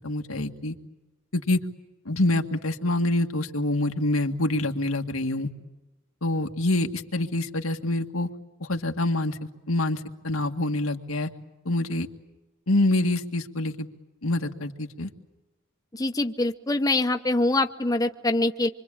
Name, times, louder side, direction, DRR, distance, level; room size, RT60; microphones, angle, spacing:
voice 1, 0.0-0.8 1.3-1.6 2.1-5.5 6.2-8.3 8.6-9.4 9.7-11.3 11.7-12.1 12.7-13.9 14.2-15.1, left 2 dB, 90° left, 4 dB, 1.9 m, -26 dB
voice 2, 15.9-18.7, left 2 dB, 15° left, 5 dB, 0.9 m, -24 dB
26.5 x 24.5 x 8.8 m, 1.1 s
head